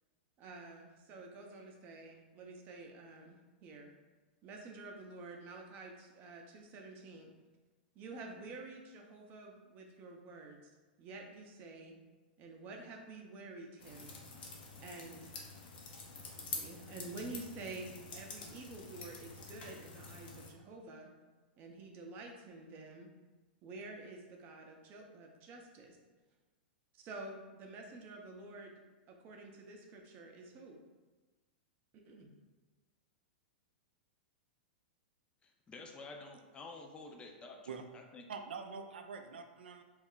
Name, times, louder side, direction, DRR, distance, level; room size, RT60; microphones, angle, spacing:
voice 1, 0.4-4.0 4.4-7.3 7.9-10.7 11.0-12.0 12.4-14.1 14.4-15.3 16.4-21.1 21.6-23.1 23.6-26.0 26.9-30.8 32.1-32.3, right 3 dB, 35° right, 2 dB, 0.5 m, -49 dB
sound 1, 13.8-20.5, left 4 dB, 70° left, 0.6 m, -47 dB
voice 2, 35.4-37.7 37.9-38.2, left 3 dB, 20° left, 2 dB, 0.4 m, -50 dB
voice 3, 38.3-39.8, right 5 dB, 85° right, 6 dB, 0.3 m, -45 dB
2.3 x 2.1 x 3.7 m, 1.3 s
hypercardioid pair, 120°, 5 cm